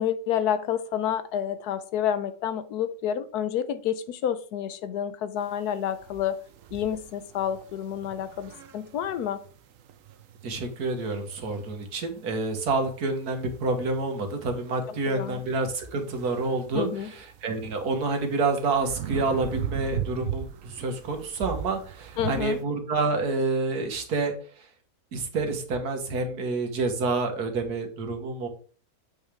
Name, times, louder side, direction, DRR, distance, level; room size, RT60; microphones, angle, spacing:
voice 1, 0.0-6.4 6.7-9.4 14.9-15.4 16.7-17.1 22.2-22.6, left 9 dB, 85° left, 13 dB, 1.3 m, -29 dB
sound 1, 5.4-22.6, right 9 dB, 65° right, 1.0 m, -40 dB
voice 2, 10.4-24.7 25.1-28.5, right 3 dB, 85° right, 5 dB, 1.9 m, -28 dB
7.2 x 6.0 x 3.4 m, 0.40 s
omnidirectional pair, 1.6 m